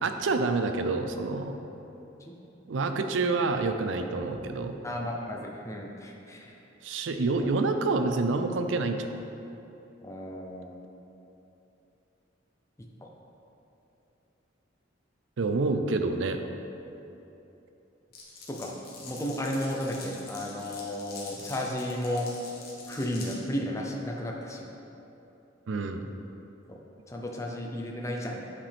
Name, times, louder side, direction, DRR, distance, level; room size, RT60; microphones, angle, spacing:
voice 1, 0.0-1.6 2.7-4.8 6.8-9.1 15.4-16.4 25.7-26.1, right 3 dB, 75° right, 7 dB, 0.5 m, -27 dB
voice 2, 4.8-6.6 7.4-7.5 10.0-10.7 13.0-13.1 18.5-18.8 19.0-22.3 22.9-24.7 26.7-26.8 27.1-28.4, left 1 dB, 15° left, -1 dB, 0.5 m, -33 dB
Glass, 18.1-23.4, left 4 dB, 55° left, 1.2 m, -45 dB
8.3 x 5.1 x 3.5 m, 3.0 s
head